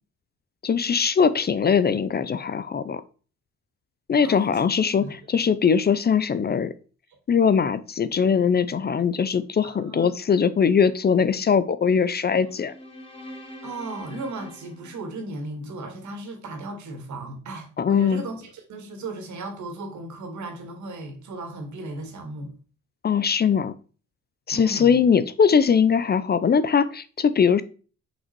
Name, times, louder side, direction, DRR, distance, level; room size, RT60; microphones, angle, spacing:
voice 1, 0.6-3.0 4.1-6.7 7.3-12.7 17.8-18.2 23.0-23.7 24.5-27.6, left 6 dB, 35° left, 0.5 m, -21 dB
voice 2, 4.2-4.6 5.0-5.2 9.6-10.1 13.6-22.5 24.5-25.0, right 2 dB, 70° right, 2.3 m, -36 dB
sound 1, 12.4-15.7, left 1 dB, 20° left, 2.4 m, -44 dB
6.0 x 5.5 x 4.5 m
cardioid pair, 90°, 30 cm